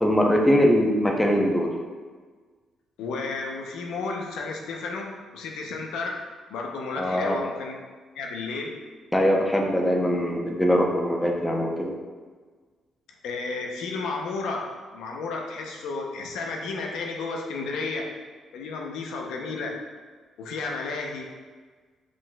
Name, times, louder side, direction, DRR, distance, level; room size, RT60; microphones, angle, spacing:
voice 1, 0.0-1.7 7.0-7.4 9.1-11.9, equal, 10° left, 1 dB, 0.6 m, -22 dB
voice 2, 3.0-6.2 6.5-7.8 8.1-8.8 13.2-18.1 18.5-19.8 20.4-21.3, left 3 dB, 85° left, 1 dB, 0.6 m, -32 dB
4.9 x 3.9 x 2.2 m, 1.4 s
cardioid pair, 90°, 0 cm